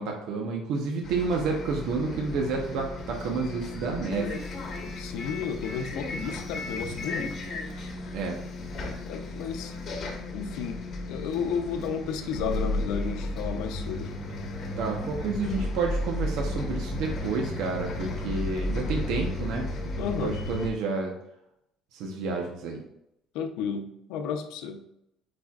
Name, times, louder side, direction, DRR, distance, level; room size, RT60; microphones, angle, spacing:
voice 1, 0.0-4.4 7.8-8.4 14.8-21.1 21.9-22.8, right 4 dB, 65° right, 1 dB, 0.9 m, -30 dB
Bus, 1.0-20.7, left 2 dB, 35° left, 1.1 m, -34 dB
voice 2, 5.0-7.3 9.0-9.7 10.3-10.8 11.1-14.1 20.0-20.4 23.3-24.8, left 6 dB, 80° left, 6 dB, 0.7 m, -32 dB
8.7 x 4.4 x 2.4 m, 0.81 s
cardioid pair, 170°, 0 cm